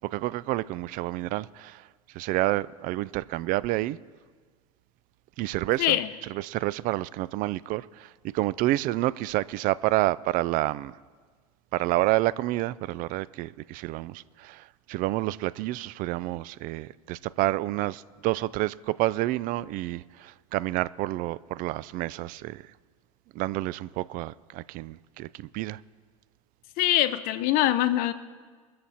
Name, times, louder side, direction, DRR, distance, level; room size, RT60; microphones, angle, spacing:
voice 1, 0.1-1.8 2.1-4.0 5.4-6.0 6.3-10.9 11.7-22.6 23.3-25.8, right 17 dB, 50° right, 0.4 m, -29 dB
voice 2, 5.8-6.1 26.8-28.1, left 14 dB, 50° left, 0.9 m, -23 dB
22.5 x 7.6 x 4.3 m
hypercardioid pair, 85°, 19 cm